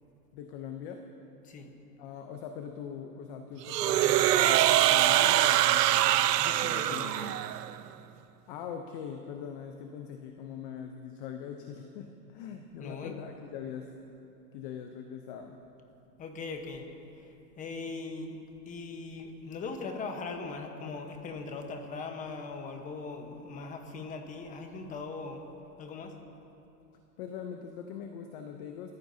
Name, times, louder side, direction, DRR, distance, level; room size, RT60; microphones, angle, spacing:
voice 1, 0.3-1.0 2.0-6.2 6.8-7.0 8.5-13.9 14.5-15.6 27.2-28.9, left 8 dB, 30° left, 5 dB, 0.7 m, -42 dB
sound 1, 3.7-7.7, right 13 dB, 70° right, 0.6 m, -24 dB
voice 2, 6.4-7.4 12.8-13.2 16.2-16.9 17.6-18.4 18.7-25.4 25.8-26.1, left 4 dB, 15° left, 4 dB, 1.1 m, -40 dB
30.0 x 14.5 x 2.8 m, 2.8 s
hypercardioid pair, 145°, 50 cm